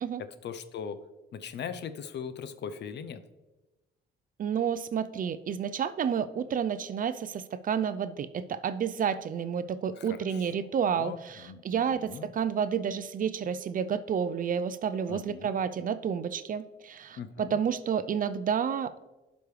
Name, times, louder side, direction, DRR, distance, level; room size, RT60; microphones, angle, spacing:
voice 1, 0.4-1.0 1.3-3.2 10.0-10.4 10.9-12.3 15.1-15.5 17.2-17.6, left 7 dB, 60° left, 12 dB, 0.6 m, -40 dB
voice 2, 4.4-19.0, right 7 dB, 45° right, 13 dB, 0.4 m, -30 dB
11.5 x 5.2 x 3.2 m, 1.1 s
cardioid pair, 90°, 20 cm